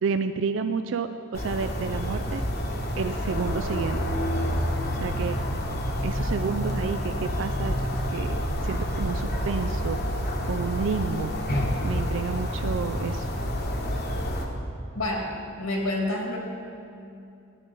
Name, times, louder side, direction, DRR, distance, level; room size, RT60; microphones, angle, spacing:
voice 1, 0.0-2.4 3.0-4.0 4.9-5.4 6.0-7.8 8.1-10.0 10.5-11.4 11.8-13.3, right 5 dB, 60° right, 9 dB, 0.4 m, -30 dB
sound 1, 1.3-14.5, equal, 50° left, 1.2 m, -28 dB
voice 2, 14.9-15.3 15.6-16.4, left 1 dB, 80° left, -1 dB, 2.4 m, -28 dB
14.0 x 10.0 x 4.1 m, 2.6 s
head